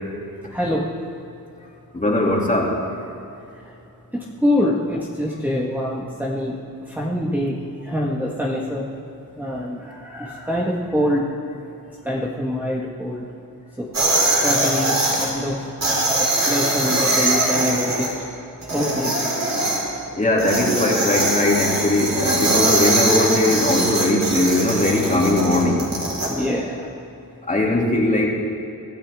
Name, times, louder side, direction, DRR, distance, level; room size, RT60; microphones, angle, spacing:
voice 1, 0.5-0.8 4.1-6.6 6.9-7.6 7.8-8.9 9.4-11.3 12.0-13.2 13.8-13.9 14.4-15.6 16.4-18.1 18.7-19.1 26.3-26.9, left 1 dB, 5° right, -6 dB, 1.7 m, -24 dB
voice 2, 1.9-2.7 20.1-25.9 27.5-28.3, left 2 dB, 20° left, -2 dB, 2.9 m, -19 dB
sound 1, 13.9-15.3 15.8-18.1 18.6-19.8 20.4-26.3, right 2 dB, 45° right, 4.7 m, -21 dB
24.0 x 14.0 x 3.7 m, 2.8 s
wide cardioid pair, 95°, 37 cm